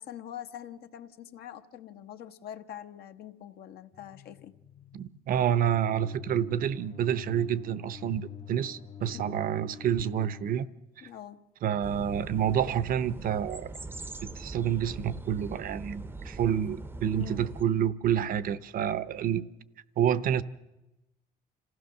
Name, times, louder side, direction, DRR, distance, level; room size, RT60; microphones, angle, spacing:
voice 1, 0.0-4.5 9.1-9.4 11.0-11.4 17.1-17.4, left 10 dB, 70° left, 1.0 m, -44 dB
sound 1, 3.9-10.6, left 9 dB, 35° left, 0.7 m, -46 dB
voice 2, 4.9-10.7 11.6-13.7 14.2-19.4 20.0-20.4, right 9 dB, 55° right, 0.8 m, -28 dB
sound 2, 11.8-17.6, right 2 dB, 10° right, 0.7 m, -42 dB
26.5 x 16.0 x 6.6 m
cardioid pair, 110°, 17 cm